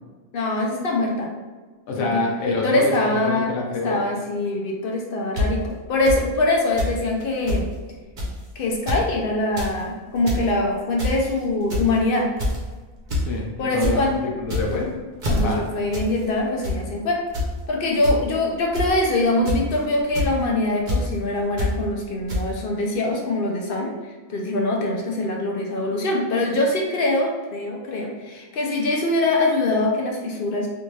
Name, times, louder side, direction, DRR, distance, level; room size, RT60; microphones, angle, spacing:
voice 1, 0.3-1.3 1.9-2.2 2.5-3.5 3.8-7.7 8.6-12.3 13.6-14.2 15.3-17.2 17.7-23.9 24.3-30.7, left 2 dB, 60° left, -1 dB, 0.6 m, -23 dB
voice 2, 1.9-4.0 13.1-14.1 14.4-14.9 15.4-15.7, left 3 dB, 80° left, -1 dB, 1.2 m, -26 dB
sound 1, 5.4-5.5 6.1-6.2 6.8-6.9 7.2-7.3 7.5-7.6 8.2-8.4 8.7-9.0 9.4-9.7 10.1-10.4 11.0-11.3 11.7-12.0 12.4-12.7 13.1-13.2 13.6-13.9 14.4-14.8 15.2-15.4 15.9-16.1 16.4-16.8 17.3-17.5 18.0-18.1 18.7-19.0 19.4-19.7 20.1-20.3 20.9-21.0 21.6-21.7 22.3-22.4, left 2 dB, 45° right, 0.8 m, -24 dB
3.4 x 2.5 x 3.1 m, 1.4 s
omnidirectional pair, 1.4 m